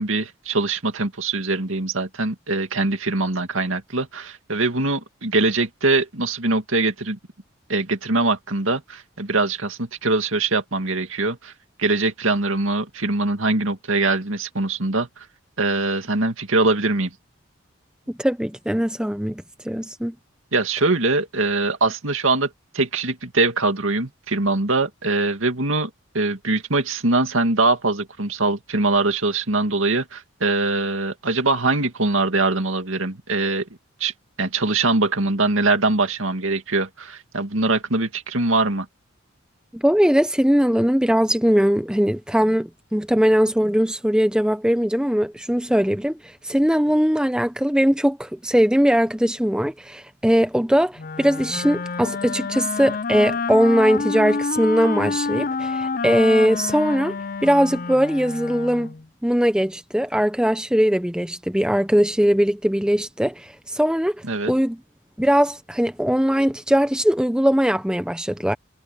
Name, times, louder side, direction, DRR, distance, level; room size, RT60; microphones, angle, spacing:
voice 1, 0.0-7.2 7.7-11.5 11.8-15.3 15.6-17.1 20.5-25.9 26.1-33.7 34.0-34.1 34.4-38.9 64.2-64.5, right 3 dB, 75° right, 2.4 m, -22 dB
voice 2, 18.1-20.1 39.7-57.2 57.4-58.9 59.2-64.8 65.2-68.5, equal, 5° right, 0.8 m, -20 dB
Wind instrument woodwind instrument, 51.0-59.0, left 4 dB, 40° left, 0.5 m, -28 dB
head